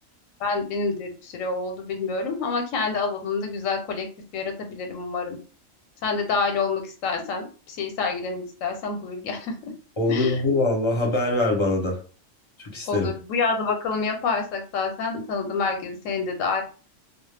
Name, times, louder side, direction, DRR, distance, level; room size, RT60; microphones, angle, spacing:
voice 1, 0.4-4.1 4.3-5.4 6.0-9.7 10.1-10.4 12.9-16.6, left 4 dB, 80° left, 4 dB, 1.0 m, -27 dB
voice 2, 10.0-12.0 12.6-13.1, left 2 dB, 30° left, -1 dB, 0.6 m, -23 dB
2.3 x 2.1 x 3.2 m, 0.37 s
omnidirectional pair, 1.4 m